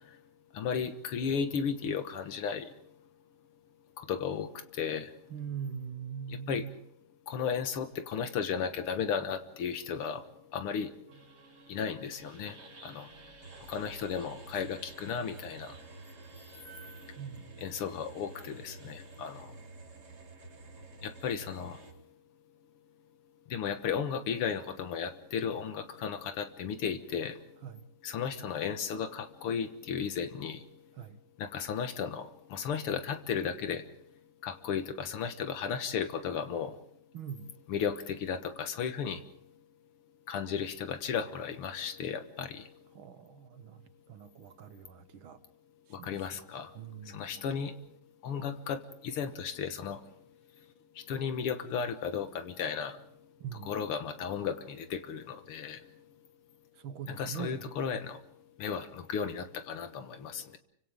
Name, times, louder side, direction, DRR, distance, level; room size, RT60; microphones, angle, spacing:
voice 1, 0.5-2.7 4.0-5.1 6.3-6.7 7.3-10.2 10.5-10.9 11.7-13.1 13.7-15.8 17.6-19.5 21.0-21.8 23.5-27.4 28.0-30.6 31.4-33.9 34.4-36.8 37.7-39.2 40.3-42.7 46.0-46.7 47.1-47.8 48.2-50.0 51.0-53.0 53.6-55.8 57.1-58.2 58.6-60.6, left 7 dB, 85° left, 2.2 m, -34 dB
voice 2, 5.3-6.8 17.2-17.8 27.6-27.8 31.0-31.2 37.1-37.5 42.9-45.4 46.0-46.2 46.7-47.4 53.4-53.7 56.8-58.1, right 8 dB, 70° right, 1.9 m, -42 dB
sound 1, 11.1-21.9, right 3 dB, 85° right, 4.4 m, -50 dB
29.5 x 25.0 x 3.7 m
omnidirectional pair, 2.4 m